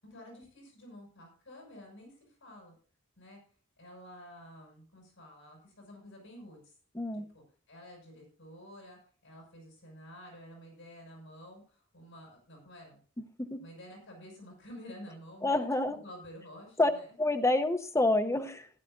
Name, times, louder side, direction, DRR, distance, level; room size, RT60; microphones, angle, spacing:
voice 1, 0.0-2.7 3.2-3.4 3.8-6.7 7.1-13.0 13.6-17.1, equal, 65° left, -1 dB, 6.7 m, -51 dB
voice 2, 6.9-7.2 13.5-13.6 15.4-16.0 16.8-16.9 17.2-18.7, left 2 dB, 15° left, 5 dB, 0.8 m, -27 dB
15.0 x 11.5 x 2.6 m, 0.40 s
head